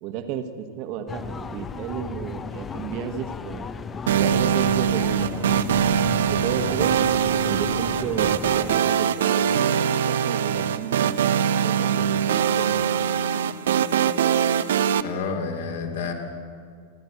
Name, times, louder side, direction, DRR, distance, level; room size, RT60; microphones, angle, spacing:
voice 1, 0.0-3.7 4.1-6.9 7.3-11.2 11.4-12.3 12.6-12.8, right 8 dB, 45° right, 8 dB, 1.5 m, -33 dB
sound 1, 1.1-8.8, left 5 dB, 20° left, 0.9 m, -35 dB
sound 2, 4.1-15.0, right 8 dB, 60° right, 0.7 m, -22 dB
voice 2, 15.0-16.1, left 5 dB, 60° left, 2 dB, 3.3 m, -29 dB
29.5 x 12.0 x 8.0 m, 2.2 s
figure-of-eight pair, 90°, 0 cm